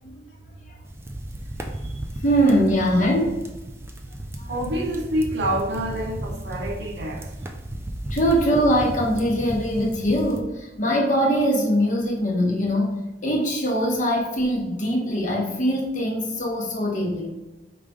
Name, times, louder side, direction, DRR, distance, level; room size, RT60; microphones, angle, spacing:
sound 1, 0.8-10.4, right 1 dB, 15° right, 0.3 m, -35 dB
voice 1, 2.2-3.4 4.4-4.7 8.1-17.3, equal, 45° left, 0.9 m, -22 dB
voice 2, 4.5-7.3, right 1 dB, 75° right, 0.7 m, -27 dB
5.0 x 2.4 x 3.5 m
head